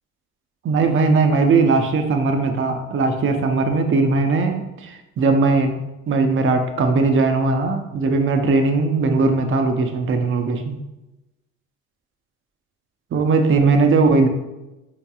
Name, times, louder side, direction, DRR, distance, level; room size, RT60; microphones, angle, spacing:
voice 1, 0.6-5.7 6.1-10.8 13.1-14.3, right 3 dB, 30° right, 6 dB, 0.6 m, -19 dB
4.4 x 3.0 x 2.3 m, 1.0 s
hypercardioid pair, 70°, 41 cm